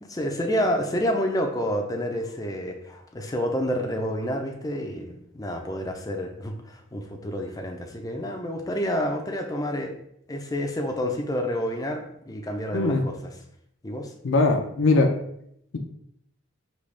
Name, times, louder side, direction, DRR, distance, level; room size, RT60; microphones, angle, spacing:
voice 1, 0.0-9.9 10.3-13.3 13.8-14.1, equal, 20° left, 3 dB, 0.5 m, -29 dB
voice 2, 14.2-15.2, left 3 dB, 65° left, 3 dB, 0.6 m, -20 dB
5.3 x 3.0 x 3.3 m, 0.72 s
head